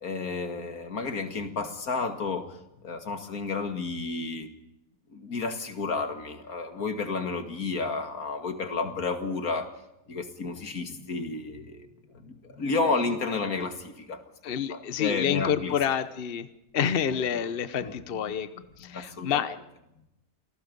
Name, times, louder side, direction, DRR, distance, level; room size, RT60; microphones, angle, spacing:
voice 1, 0.0-4.5 5.1-9.7 10.1-11.9 12.1-14.2 14.7-15.8 17.1-17.5 17.8-17.9 18.3-18.4 18.8-19.5, left 4 dB, 90° left, 7 dB, 2.5 m, -31 dB
voice 2, 14.4-16.5 16.7-18.5 18.8-19.6, left 8 dB, 45° left, 13 dB, 1.1 m, -28 dB
28.0 x 19.5 x 5.3 m, 0.85 s
omnidirectional pair, 1.5 m